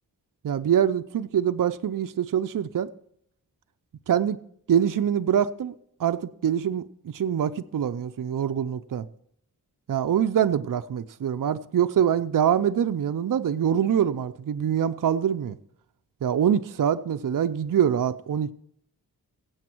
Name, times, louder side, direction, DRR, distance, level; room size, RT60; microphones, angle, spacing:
voice 1, 0.4-2.9 4.1-4.4 4.7-5.7 6.0-9.0 9.9-15.6 16.2-18.5, right 9 dB, 55° right, 0.6 m, -24 dB
16.0 x 8.0 x 4.5 m
cardioid pair, 45°, 38 cm